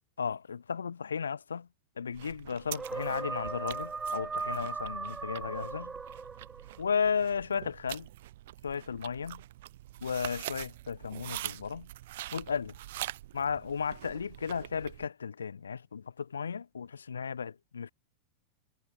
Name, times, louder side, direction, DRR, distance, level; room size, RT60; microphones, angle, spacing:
voice 1, 0.2-1.7 2.0-5.9 6.8-8.1 8.6-9.4 10.0-11.9 12.3-12.7 13.3-17.9, left 6 dB, 70° left, 0.9 m, -34 dB
sound 1, 2.1-15.1, right 15 dB, 55° right, 1.2 m, -44 dB
sound 2, 2.7-6.8, right 4 dB, 15° right, 0.5 m, -37 dB
figure-of-eight pair, 90°, 0 cm